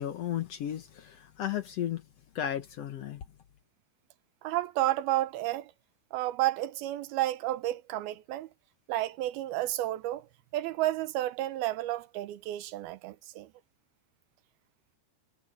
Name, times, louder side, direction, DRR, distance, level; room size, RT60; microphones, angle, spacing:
voice 1, 0.0-2.0 2.3-3.2, left 10 dB, 70° left, 1.5 m, -34 dB
voice 2, 4.4-5.7 6.1-8.5 8.9-10.3 10.5-13.5, right 15 dB, 90° right, 2.9 m, -31 dB
omnidirectional pair, 4.3 m